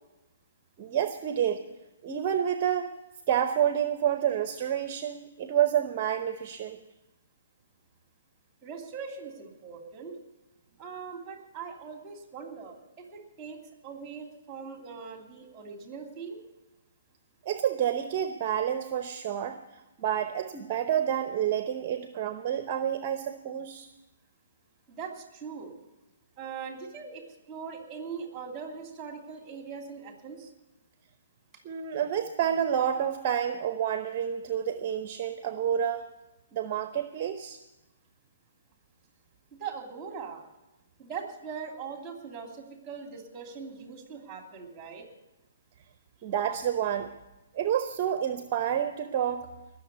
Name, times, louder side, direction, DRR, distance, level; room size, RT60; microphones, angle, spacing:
voice 1, 0.8-1.7 2.0-2.9 3.3-6.8 17.5-19.6 20.0-23.9 31.6-36.0 36.5-37.6 46.2-47.1 47.5-49.4, right 9 dB, 35° right, 8 dB, 0.8 m, -29 dB
voice 2, 8.6-10.2 10.8-16.4 24.9-25.7 26.4-30.5 39.6-40.4 41.0-45.1, right 6 dB, 20° right, 3 dB, 2.9 m, -41 dB
19.5 x 6.9 x 8.2 m, 1.0 s
hypercardioid pair, 145°, 0 cm